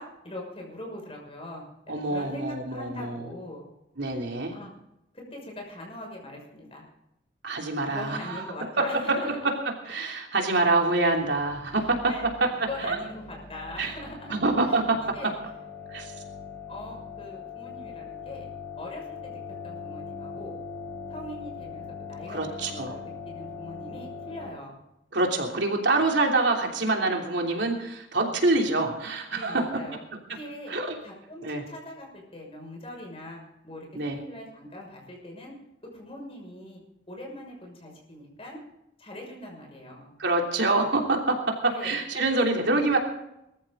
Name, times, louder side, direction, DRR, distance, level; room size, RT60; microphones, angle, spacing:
voice 1, 0.0-3.6 4.5-4.7 5.1-6.8 7.9-9.3 11.7-12.3 12.7-14.3 14.6-14.9 15.1-15.3 16.7-18.5 18.8-20.6 21.1-24.8 29.3-30.0 30.3-30.7 31.0-33.4 33.6-35.5 35.9-36.8 37.1-38.6 39.0-40.1 41.6-42.0 42.3-42.4, left 1 dB, 30° left, 0 dB, 6.2 m, -41 dB
voice 2, 1.9-3.2 4.0-4.5 7.4-8.4 8.8-9.3 9.9-12.5 12.8-12.9 13.8-13.9 14.3-15.0 15.9-16.1 22.3-22.9 25.1-29.7 30.7-31.0 31.4-31.6 33.9-34.2 40.2-43.0, right 2 dB, 70° right, 1 dB, 3.1 m, -26 dB
sound 1, 11.2-24.5, left 5 dB, 10° left, 3.6 m, -41 dB
21.5 x 14.0 x 3.9 m, 0.84 s
head